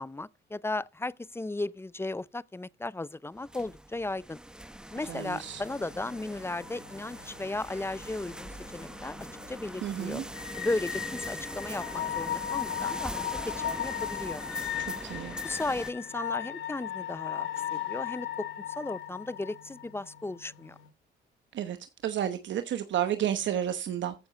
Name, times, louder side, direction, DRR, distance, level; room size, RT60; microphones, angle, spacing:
voice 1, 0.0-4.4 4.9-10.2 10.6-14.4 15.4-18.5 18.8-20.8, left 2 dB, 10° left, 0.5 m, -35 dB
sound 1, 3.4-15.9, right 1 dB, 5° right, 0.9 m, -42 dB
sound 2, 4.9-20.9, left 10 dB, 75° left, 3.1 m, -38 dB
voice 2, 5.1-5.6 9.8-10.2 14.8-15.4 21.5-21.8 22.0-24.1, right 10 dB, 70° right, 1.1 m, -31 dB
14.5 x 7.0 x 4.0 m
cardioid pair, 90°, 20 cm